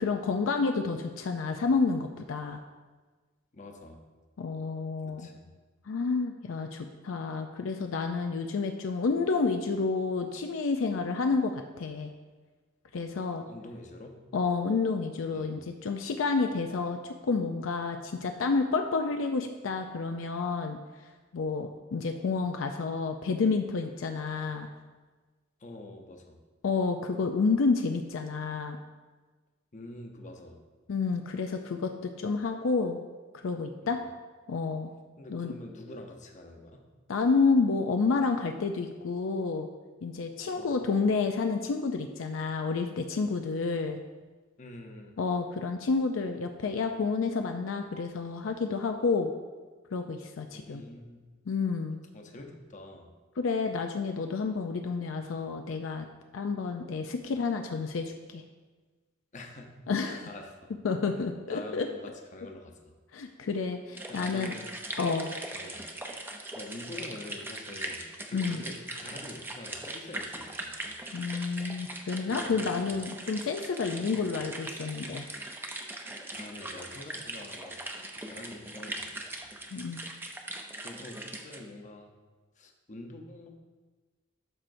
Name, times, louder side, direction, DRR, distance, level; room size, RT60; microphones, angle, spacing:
voice 1, 0.0-2.6 4.4-5.3 5.9-12.1 12.9-13.4 14.3-17.0 17.3-20.8 21.3-24.7 26.6-28.8 30.9-33.0 33.4-34.0 34.5-34.9 35.3-35.5 37.1-39.7 40.0-44.0 45.2-49.3 49.9-50.8 51.5-52.0 53.4-56.1 56.3-58.4 59.9-60.2 60.8-61.9 63.1-64.5 65.0-65.3 68.3-68.6 71.1-75.3 79.7-80.0, left 4 dB, 75° left, 5 dB, 0.4 m, -29 dB
voice 2, 3.5-4.0 5.0-5.5 13.5-14.2 15.3-15.6 25.6-26.4 29.7-30.6 33.8-34.0 35.2-36.8 40.5-40.8 44.6-45.2 50.5-51.2 52.1-53.1 59.3-59.7 60.0-60.7 61.5-62.8 64.1-64.8 65.5-65.9 66.5-68.0 68.3-70.9 72.2-73.0 74.0-74.3 76.2-79.5 80.7-82.1 82.6-83.5, left 2 dB, 40° left, 3 dB, 0.8 m, -46 dB
sound 1, 64.0-81.6, right 1 dB, 10° right, 0.6 m, -40 dB
12.5 x 4.4 x 2.6 m, 1.3 s
head